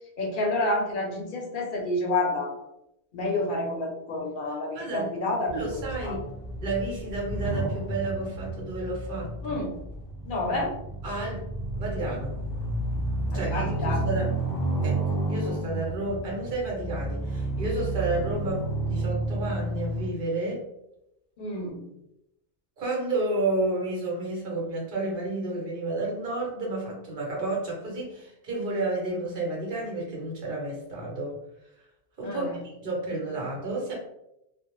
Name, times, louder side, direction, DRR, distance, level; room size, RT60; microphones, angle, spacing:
voice 1, 0.2-2.5 3.1-6.2 9.4-9.7 10.2-10.7 13.3-14.0 21.4-21.8 32.2-32.6, left 2 dB, 60° left, 0 dB, 0.7 m, -29 dB
voice 2, 4.5-5.1 5.5-6.2 6.6-9.6 11.0-11.5 11.8-12.4 13.3-14.3 14.8-15.0 15.3-20.6 22.8-31.4 32.2-33.9, right 2 dB, 60° right, -3 dB, 1.1 m, -31 dB
sound 1, 5.5-20.1, right 2 dB, 5° right, 0.9 m, -31 dB
2.4 x 2.0 x 3.0 m, 0.84 s
omnidirectional pair, 1.0 m